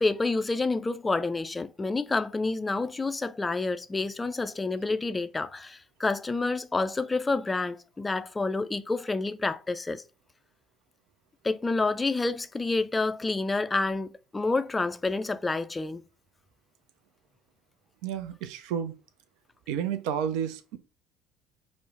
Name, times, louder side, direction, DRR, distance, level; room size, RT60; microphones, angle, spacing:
voice 1, 0.0-10.0 11.4-16.0, left 3 dB, 20° left, 0.3 m, -28 dB
voice 2, 18.0-19.0 19.7-20.8, right 8 dB, 65° right, 0.4 m, -31 dB
4.4 x 2.1 x 3.2 m
figure-of-eight pair, 55°, 0 cm